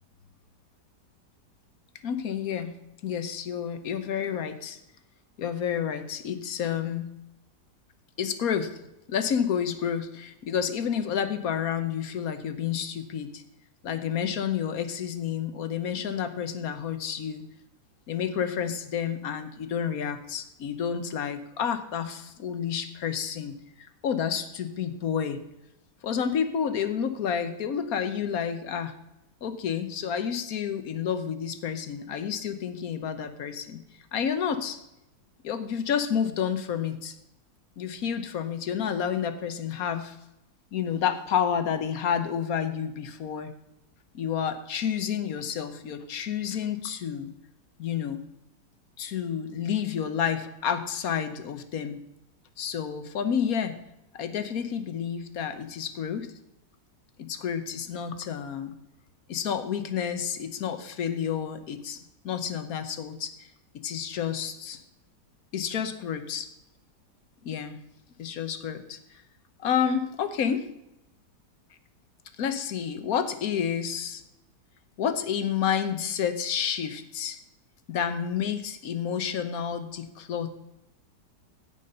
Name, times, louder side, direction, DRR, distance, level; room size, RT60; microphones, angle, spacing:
voice 1, 2.0-2.7 3.0-4.8 5.4-7.1 8.2-8.7 9.1-13.4 13.8-17.4 18.1-23.5 24.0-25.4 26.0-28.9 29.4-33.8 34.1-34.8 35.4-37.1 37.8-40.2 40.7-43.5 44.1-47.3 47.8-48.2 49.0-52.0 52.6-53.7 54.1-56.3 57.2-58.7 59.3-62.0 62.2-63.3 63.8-64.8 65.5-66.4 67.4-67.8 68.2-69.0 69.6-70.7 72.4-74.2 75.0-77.4 77.9-80.5, left 8 dB, 60° left, 10 dB, 1.3 m, -30 dB
16.0 x 5.6 x 5.4 m, 0.87 s
omnidirectional pair, 1.8 m